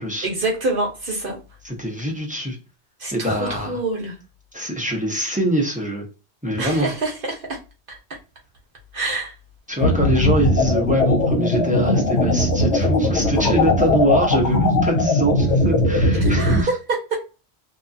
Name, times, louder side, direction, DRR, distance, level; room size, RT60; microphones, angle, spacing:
voice 1, 0.2-1.4 3.0-4.1 6.6-7.6 7.9-8.0 8.9-9.3 16.1-17.3, right 2 dB, 55° right, 0 dB, 0.9 m, -26 dB
voice 2, 1.6-2.6 3.1-3.8 4.5-6.0 6.4-6.9 9.7-16.7, equal, 10° right, 0 dB, 0.5 m, -23 dB
sound 1, 9.8-16.6, left 1 dB, 85° left, 0.9 m, -19 dB
2.7 x 2.3 x 2.5 m, 0.32 s
omnidirectional pair, 1.2 m